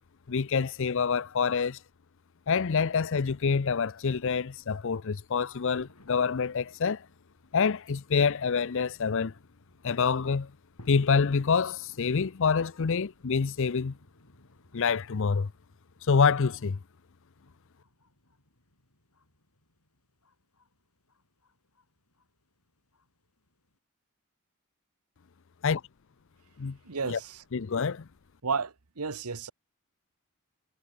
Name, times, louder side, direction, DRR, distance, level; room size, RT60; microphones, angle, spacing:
voice 1, 0.3-1.8 2.5-7.0 7.5-9.3 9.8-10.5 10.9-14.0 14.7-15.5 16.1-16.8 25.6-25.8 26.6-26.8 27.1-27.2 27.5-28.1, left 5 dB, 60° left, 0.6 m, -26 dB
sound 1, 5.8-23.8, left 1 dB, 90° left, 7.2 m, -60 dB
voice 2, 26.8-27.4 28.4-29.5, right 5 dB, 90° right, 1.2 m, -32 dB
head